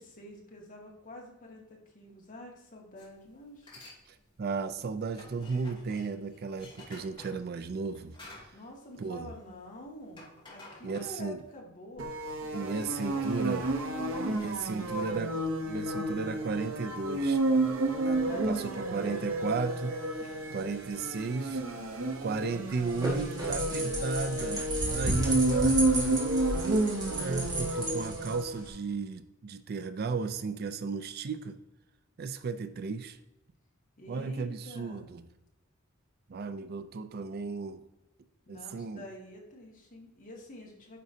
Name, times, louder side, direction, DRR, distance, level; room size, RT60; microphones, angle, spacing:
voice 1, 0.0-3.7 8.5-15.3 18.3-19.2 20.2-20.5 23.5-26.8 34.0-35.1 38.5-41.0, left 1 dB, 40° left, -2 dB, 1.8 m, -48 dB
sound 1, 3.0-3.2 3.5-4.0 4.3-9.6 9.9-11.5, left 2 dB, 25° left, 2.4 m, -51 dB
voice 2, 4.1-8.1 9.0-9.3 10.8-11.4 12.5-13.7 14.3-15.3 15.6-17.4 18.0-20.0 20.5-21.6 22.2-25.7 27.1-31.6 32.2-33.2 34.1-35.2 36.3-37.8 38.5-39.1, right 4 dB, 50° right, 11 dB, 0.4 m, -34 dB
sound 2, 12.0-28.6, right 2 dB, 75° right, 0.9 m, -31 dB
sound 3, 22.7-28.7, right 1 dB, 20° right, 1.7 m, -34 dB
9.3 x 5.2 x 2.7 m, 0.96 s
head